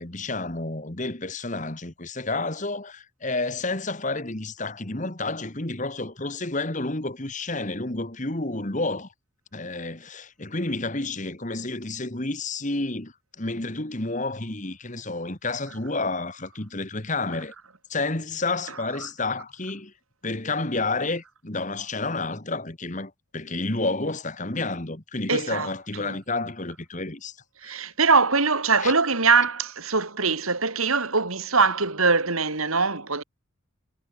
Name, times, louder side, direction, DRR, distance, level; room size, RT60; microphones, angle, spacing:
voice 1, 0.0-9.1 9.5-17.5 17.9-19.9 20.2-27.4 27.6-27.7 28.8-28.9, left 2 dB, 35° left, 1.9 m, -30 dB
voice 2, 25.3-25.7 26.0-26.1 27.6-33.2, right 4 dB, 85° right, 4.5 m, -22 dB
head